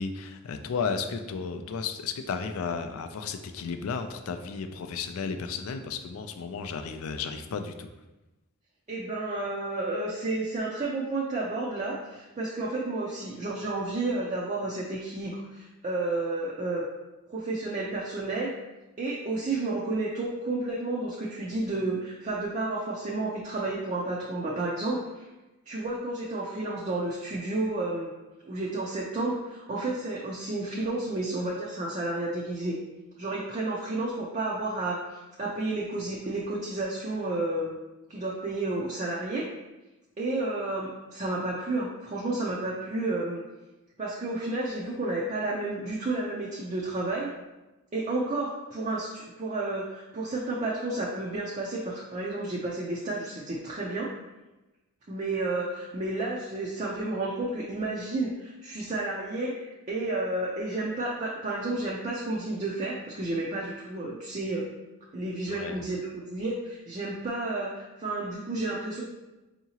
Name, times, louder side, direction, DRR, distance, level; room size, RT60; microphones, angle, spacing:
voice 1, 0.0-7.9 65.5-65.8, left 5 dB, 75° left, 8 dB, 0.4 m, -33 dB
voice 2, 8.9-16.8 17.3-18.5 19.0-25.3 25.7-28.1 28.5-32.8 33.2-37.7 38.1-39.4 40.2-43.4 44.0-47.3 47.9-54.1 55.1-64.7 65.1-69.0, right 2 dB, 35° right, -4 dB, 0.4 m, -31 dB
4.7 x 2.8 x 2.8 m, 1.1 s
head